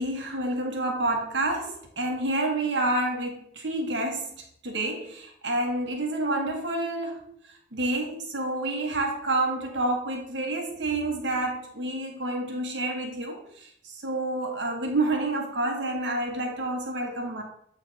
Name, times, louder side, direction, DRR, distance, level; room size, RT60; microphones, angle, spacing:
voice 1, 0.0-7.3 7.7-17.4, right 2 dB, 70° right, 2 dB, 1.3 m, -29 dB
8.0 x 3.3 x 4.1 m, 0.68 s
head